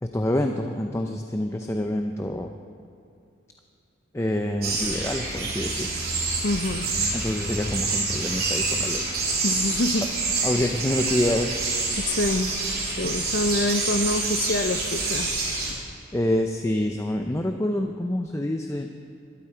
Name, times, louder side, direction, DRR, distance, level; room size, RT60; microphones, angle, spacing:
voice 1, 0.0-2.5 4.1-6.0 7.1-9.1 10.4-11.5 16.1-18.9, left 1 dB, 15° left, 4 dB, 0.5 m, -27 dB
sound 1, 4.6-15.7, right 3 dB, 50° right, 3.4 m, -27 dB
voice 2, 6.4-6.9 9.4-10.1 12.0-12.6 13.0-15.3, left 2 dB, 60° left, 9 dB, 0.7 m, -26 dB
20.0 x 12.5 x 4.5 m, 2.6 s
head